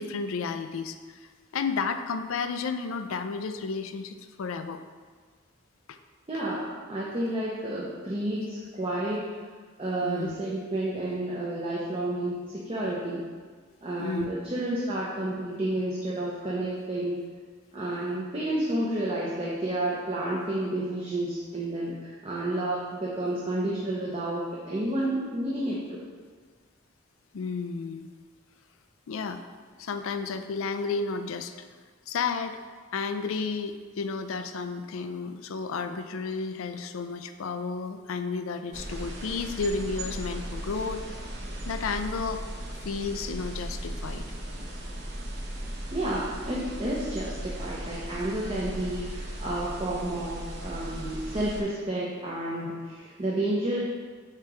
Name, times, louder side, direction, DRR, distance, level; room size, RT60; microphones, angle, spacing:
voice 1, 0.0-4.8 5.9-6.0 10.0-10.3 14.0-14.3 27.3-28.1 29.1-29.4 29.8-31.7 32.1-32.6 32.9-41.0 41.7-42.4 42.7-44.2, left 4 dB, 75° left, 9 dB, 0.4 m, -32 dB
voice 2, 6.3-9.3 9.8-13.2 13.8-17.2 17.7-26.0 45.9-53.8, right 1 dB, 25° right, -6 dB, 0.7 m, -30 dB
sound 1, 38.7-51.6, right 1 dB, 50° right, 0.8 m, -37 dB
7.5 x 2.9 x 4.7 m, 1.5 s
head